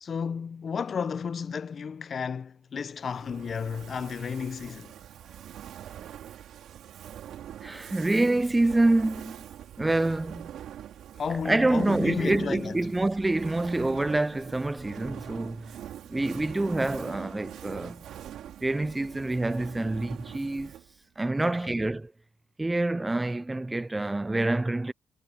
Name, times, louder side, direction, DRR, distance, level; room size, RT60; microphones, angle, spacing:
voice 1, 0.0-4.9 11.1-12.8 21.4-21.8, left 6 dB, 45° left, 0.5 m, -32 dB
Fire, 3.0-21.0, right 10 dB, 75° right, 4.1 m, -43 dB
voice 2, 7.6-9.4 9.8-10.5 11.4-15.8 16.1-18.0 18.6-20.7 21.2-22.1 22.6-24.9, right 2 dB, 15° right, 0.4 m, -26 dB
cardioid pair, 90°, 0 cm